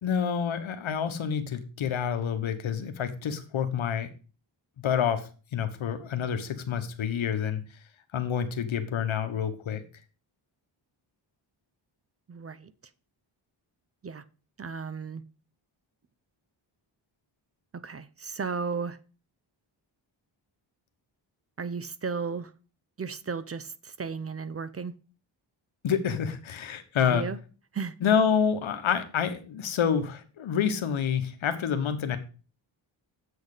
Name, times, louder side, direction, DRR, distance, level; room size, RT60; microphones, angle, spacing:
voice 1, 0.0-4.1 4.8-7.6 8.1-9.8 25.8-27.3 28.0-32.2, left 7 dB, 80° left, 1.2 m, -28 dB
voice 2, 12.3-12.7 14.0-14.2 14.6-15.2 17.7-19.0 21.6-22.5 23.0-24.9 27.0-27.4 27.7-27.9, right 5 dB, 30° right, 0.5 m, -34 dB
7.7 x 6.4 x 4.9 m
wide cardioid pair, 115°, 47 cm